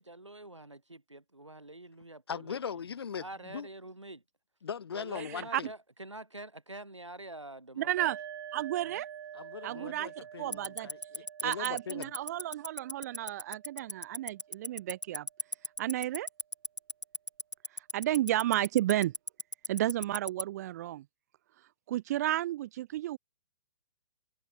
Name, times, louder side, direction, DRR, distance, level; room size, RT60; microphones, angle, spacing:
voice 1, 0.0-2.8 3.1-4.2 4.9-8.1 8.8-9.0 9.7-9.9, right 2 dB, 85° right, 2.8 m, -46 dB
voice 2, 2.3-3.7 4.6-5.7 9.3-12.1, left 7 dB, 60° left, 5.1 m, -40 dB
voice 3, 5.2-5.6 7.8-8.2 8.5-9.1 9.6-10.1 10.4-10.9 11.4-15.3 15.8-16.3 17.7-19.1 19.7-21.0 21.9-23.2, right 14 dB, 35° right, 0.6 m, -32 dB
sound 1, 8.0-15.5, right 9 dB, 50° right, 2.3 m, -48 dB
Tick-tock, 10.5-20.4, left 2 dB, 85° left, 2.8 m, -34 dB
figure-of-eight pair, 125°, 15 cm